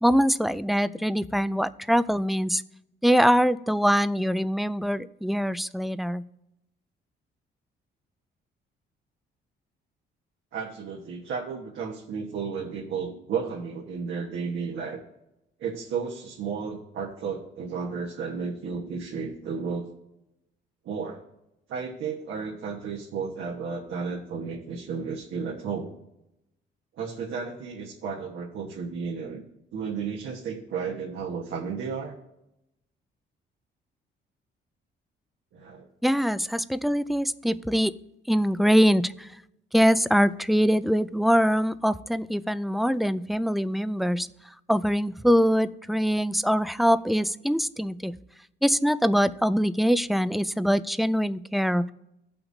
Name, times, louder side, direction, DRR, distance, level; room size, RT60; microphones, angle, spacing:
voice 1, 0.0-2.6 3.0-6.2 36.0-37.9 38.3-39.3 39.7-44.3 44.7-48.1 48.6-51.9, equal, ahead, 14 dB, 0.3 m, -23 dB
voice 2, 10.5-15.0 15.6-19.9 20.8-21.2 21.7-25.9 26.9-29.4 29.7-32.2 35.5-35.9, right 5 dB, 75° right, -2 dB, 1.3 m, -33 dB
17.0 x 5.9 x 2.7 m, 0.87 s
cardioid pair, 90°, 20 cm